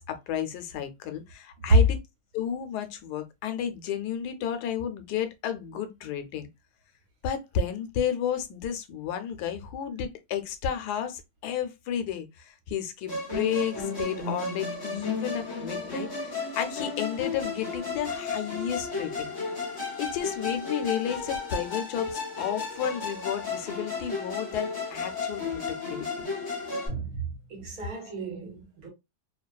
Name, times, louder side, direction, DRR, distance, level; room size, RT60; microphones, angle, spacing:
voice 1, 0.0-2.0 2.3-6.5 7.2-19.3 20.0-26.1, left 9 dB, 90° left, 1.1 m, -32 dB
Musical instrument, 13.1-26.9, left 4 dB, 15° left, 1.1 m, -33 dB
voice 2, 26.9-28.9, right 5 dB, 65° right, 1.5 m, -37 dB
3.0 x 2.2 x 2.2 m
omnidirectional pair, 1.7 m